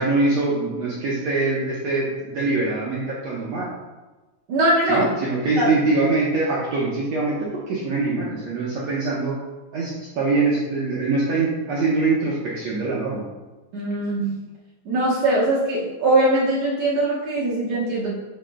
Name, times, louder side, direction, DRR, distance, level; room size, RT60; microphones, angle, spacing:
voice 1, 0.0-3.7 4.9-9.3 9.7-13.2, right 3 dB, 80° right, -6 dB, 1.5 m, -23 dB
voice 2, 4.5-5.1 5.5-5.7 13.7-14.3 14.9-18.1, right 1 dB, 60° right, -7 dB, 1.8 m, -21 dB
9.6 x 6.3 x 2.3 m, 1.2 s
omnidirectional pair, 4.5 m